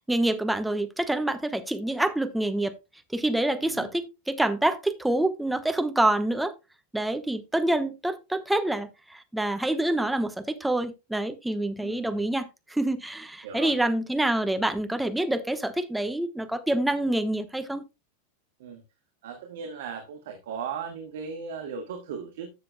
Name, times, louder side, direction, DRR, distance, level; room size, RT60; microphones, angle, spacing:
voice 1, 0.1-2.7 3.1-6.5 6.9-17.8, right 1 dB, 5° right, 1.0 m, -27 dB
voice 2, 3.6-3.9 11.8-12.2 13.4-13.7 18.6-18.8 19.2-22.5, right 6 dB, 55° right, 1.5 m, -37 dB
13.0 x 7.5 x 2.2 m
figure-of-eight pair, 90°, 0 cm